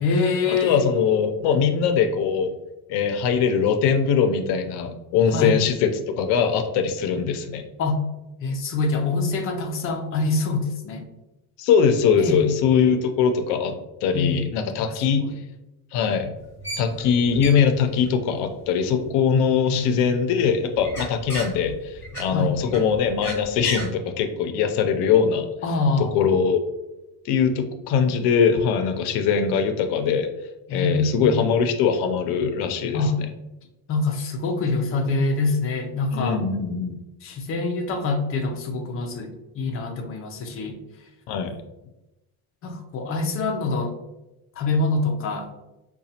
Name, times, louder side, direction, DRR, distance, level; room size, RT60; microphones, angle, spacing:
voice 1, 0.0-0.8 1.4-1.6 5.3-5.6 7.8-8.0 8.4-11.0 12.2-12.5 14.1-14.4 14.8-15.0 19.6-20.1 22.3-22.6 25.6-26.3 30.7-31.4 32.9-33.2 33.9-36.4 37.2-40.8 42.6-43.9 44.6-45.5, left 3 dB, 35° left, 4 dB, 0.4 m, -25 dB
voice 2, 0.6-2.5 2.9-7.6 11.6-13.8 14.0-15.2 15.9-16.3 16.8-25.5 26.1-26.6 27.2-30.3 30.7-33.0 36.1-37.0 41.3-41.6, left 6 dB, 85° left, 7 dB, 0.6 m, -21 dB
sound 1, 16.4-19.8 20.2-23.8, right 1 dB, 5° left, 1.4 m, -36 dB
4.9 x 2.2 x 2.7 m, 0.97 s
cardioid pair, 180°, 39 cm